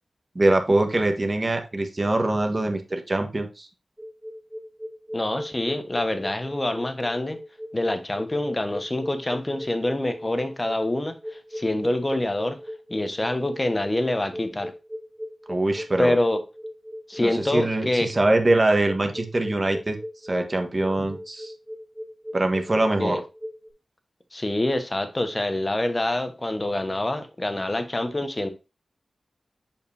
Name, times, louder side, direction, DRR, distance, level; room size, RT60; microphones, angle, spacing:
voice 1, 0.3-3.7 15.5-16.2 17.2-20.0 20.3-21.5 22.3-23.2, right 2 dB, 35° right, 1.4 m, -23 dB
sound 1, 4.0-23.7, equal, ahead, 2.6 m, -37 dB
voice 2, 5.1-7.4 7.7-12.6 12.9-14.7 16.0-16.4 17.1-18.1 23.0-23.2 24.3-28.5, left 1 dB, 30° left, 1.2 m, -26 dB
6.9 x 5.2 x 2.7 m
cardioid pair, 45°, 0 cm